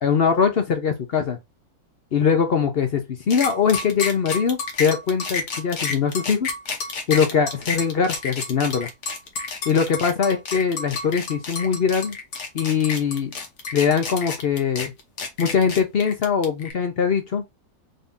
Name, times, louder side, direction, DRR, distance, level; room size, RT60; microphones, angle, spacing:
voice 1, 0.0-1.4 2.1-6.5 7.1-8.9 9.7-12.2 12.5-13.3 13.7-14.9 15.4-17.4, left 6 dB, 55° left, 0.7 m, -22 dB
sound 1, 3.3-16.7, left 4 dB, 85° left, 1.5 m, -30 dB
4.0 x 2.7 x 3.5 m
omnidirectional pair, 1.6 m